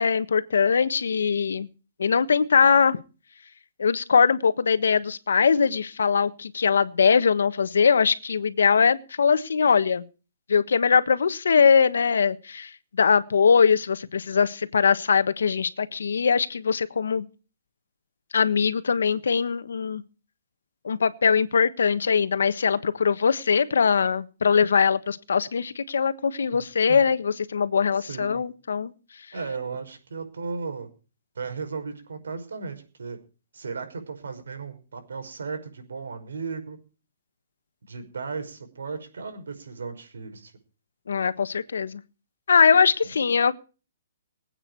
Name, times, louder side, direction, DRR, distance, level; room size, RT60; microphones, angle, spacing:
voice 1, 0.0-1.7 2.0-3.0 3.8-10.0 10.5-17.3 18.3-20.0 20.8-28.9 41.1-42.0 42.5-43.5, left 6 dB, 85° left, 1.4 m, -21 dB
voice 2, 28.0-28.4 29.3-30.9 31.4-33.2 33.5-36.8 37.9-40.5, right 4 dB, 90° right, 5.5 m, -35 dB
23.5 x 8.9 x 4.7 m
hypercardioid pair, 170°, 0 cm